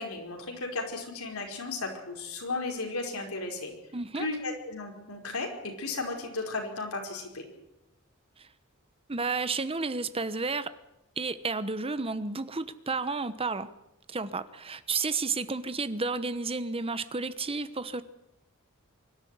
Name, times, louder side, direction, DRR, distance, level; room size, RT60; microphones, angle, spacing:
voice 1, 0.0-3.7 4.1-7.4, left 3 dB, 85° left, 2 dB, 5.1 m, -35 dB
voice 2, 3.9-4.3 8.4-8.5 9.1-10.7 11.2-13.7 14.1-18.0, right 4 dB, 25° right, 13 dB, 1.0 m, -31 dB
24.5 x 12.5 x 9.5 m, 0.89 s
head